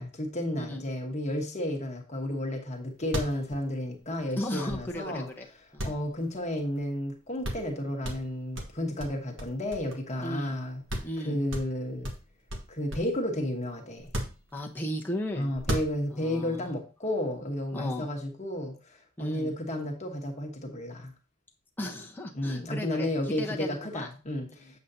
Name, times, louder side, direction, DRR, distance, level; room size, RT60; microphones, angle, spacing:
voice 1, 0.0-10.8 11.2-12.1 12.7-14.1 15.3-21.1 22.3-24.8, left 1 dB, 30° left, 1.3 m, -32 dB
sound 1, 2.7-2.8 3.0-5.2 5.8-6.8 7.1-7.2 7.4-7.7 8.0-10.2 10.5-10.6 10.9-11.2 11.5-13.2 14.0-14.9 15.5-16.3, equal, 60° right, 1.5 m, -36 dB
voice 2, 4.4-5.5 5.7-5.9 10.2-10.6 11.0-11.4 14.5-15.5 16.1-16.7 17.7-18.1 19.2-19.5 21.8-24.1 24.5-24.8, left 1 dB, 10° left, 0.9 m, -36 dB
7.9 x 7.3 x 2.8 m
head